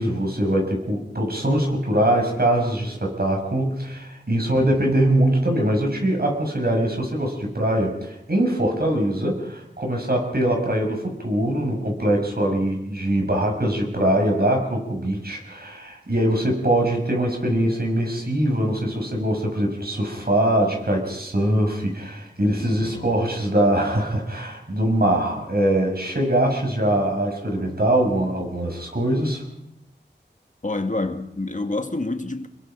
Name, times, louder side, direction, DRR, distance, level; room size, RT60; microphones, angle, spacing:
voice 1, 0.0-29.4, right 1 dB, 55° right, 6.5 m, -22 dB
voice 2, 4.5-5.0 22.6-23.2 30.6-32.5, left 2 dB, 40° left, 1.7 m, -29 dB
26.5 x 21.0 x 5.2 m
wide cardioid pair, 45°, 19 cm